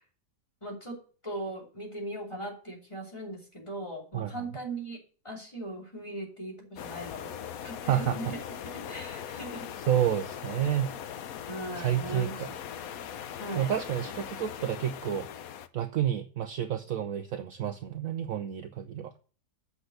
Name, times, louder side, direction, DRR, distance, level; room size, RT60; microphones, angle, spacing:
voice 1, 0.6-1.0 1.2-5.0 5.2-7.3 7.6-9.7 11.5-12.4 13.4-13.7, right 1 dB, 15° left, -2 dB, 3.0 m, -39 dB
voice 2, 4.1-4.5 7.9-8.3 9.9-10.9 11.8-12.5 13.6-15.3 15.7-19.1, right 10 dB, 65° right, 8 dB, 0.9 m, -30 dB
sound 1, 6.8-15.7, left 9 dB, 65° left, 1.1 m, -40 dB
8.2 x 6.1 x 6.4 m, 0.40 s
omnidirectional pair, 1.8 m